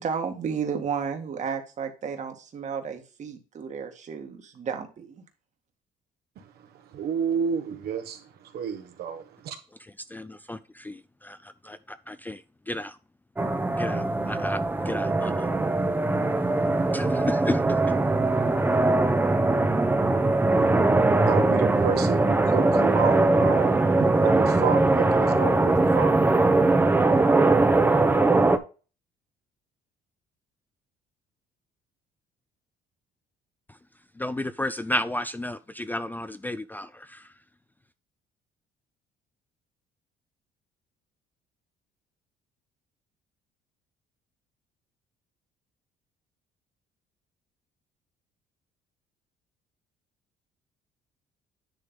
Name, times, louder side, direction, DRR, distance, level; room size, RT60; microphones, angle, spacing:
voice 1, 0.0-5.2, right 6 dB, 45° right, 1.8 m, -32 dB
voice 2, 6.9-9.6 20.6-20.7 21.2-26.1, right 7 dB, 70° right, 1.6 m, -30 dB
voice 3, 9.8-13.0 13.8-15.5 16.9-17.8 33.7-33.8 34.2-37.3, left 1 dB, 10° left, 0.4 m, -33 dB
sound 1, 13.4-28.6, right 2 dB, 10° right, 0.8 m, -21 dB
9.8 x 3.4 x 5.2 m
cardioid pair, 110°, 17 cm